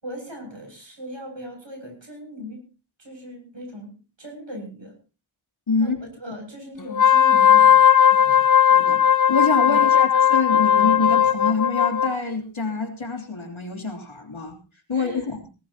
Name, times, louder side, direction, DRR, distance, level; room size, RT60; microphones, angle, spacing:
voice 1, 0.0-2.7 3.0-5.0 5.8-7.8 8.1-8.5 9.6-9.8 14.9-15.3, left 1 dB, 65° right, 3 dB, 7.2 m, -38 dB
voice 2, 5.7-6.0 8.7-9.0 9.3-14.6 14.9-15.4, left 4 dB, 80° left, 1 dB, 3.5 m, -26 dB
Wind instrument woodwind instrument, 6.9-12.1, left 9 dB, 40° left, 1.0 m, -17 dB
19.0 x 18.0 x 2.9 m, 0.33 s
wide cardioid pair, 45°, 47 cm